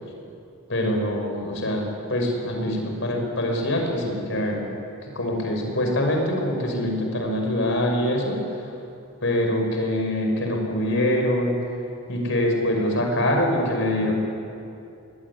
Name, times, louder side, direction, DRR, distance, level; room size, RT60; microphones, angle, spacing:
voice 1, 0.7-4.7 5.0-8.4 9.2-11.6 12.1-14.1, left 1 dB, 55° left, 2 dB, 6.1 m, -24 dB
25.5 x 22.0 x 10.0 m, 2.7 s
head